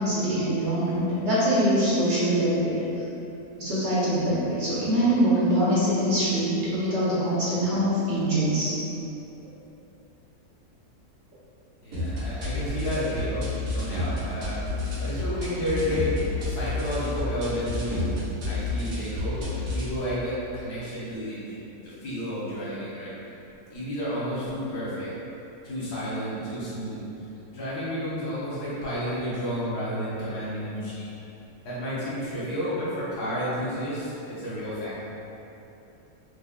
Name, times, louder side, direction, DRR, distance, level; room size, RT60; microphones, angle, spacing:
voice 1, 0.0-2.8 3.6-8.8, right 1 dB, 55° right, -10 dB, 1.0 m, -24 dB
voice 2, 11.8-14.6 15.0-16.1 16.4-18.1 18.5-23.1 23.7-25.1 25.6-27.0 27.5-31.1 31.6-35.0, equal, 90° left, -10 dB, 1.7 m, -31 dB
sound 1, 11.9-19.9, left 2 dB, 85° right, 1.4 m, -30 dB
4.7 x 2.5 x 2.3 m, 2.9 s
omnidirectional pair, 1.6 m